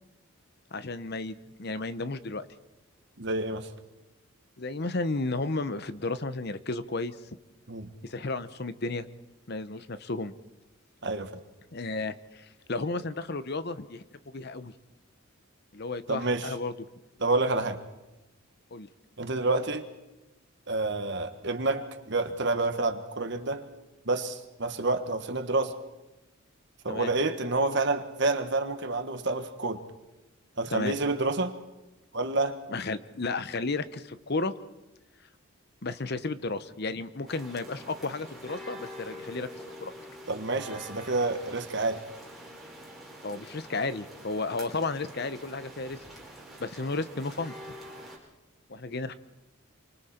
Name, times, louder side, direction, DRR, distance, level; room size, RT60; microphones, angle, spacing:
voice 1, 0.7-2.5 4.6-7.1 8.0-9.1 9.5-10.3 11.7-14.0 14.3-14.7 15.7-16.7 18.7-18.9 26.9-27.1 30.7-31.0 32.7-34.5 35.8-39.5 39.8-39.9 43.2-46.0 46.6-47.5 48.7-49.1, left 3 dB, 50° left, 13 dB, 0.8 m, -33 dB
voice 2, 3.2-3.7 7.7-7.9 11.0-11.3 16.1-16.5 17.2-17.8 19.2-19.9 20.7-23.7 24.0-25.8 26.8-29.8 30.6-31.5 32.1-32.6 40.3-42.0, right 2 dB, 55° right, 8 dB, 1.5 m, -28 dB
sound 1, 37.3-48.2, equal, ahead, 4.7 m, -46 dB
28.0 x 25.0 x 4.4 m, 1.0 s
head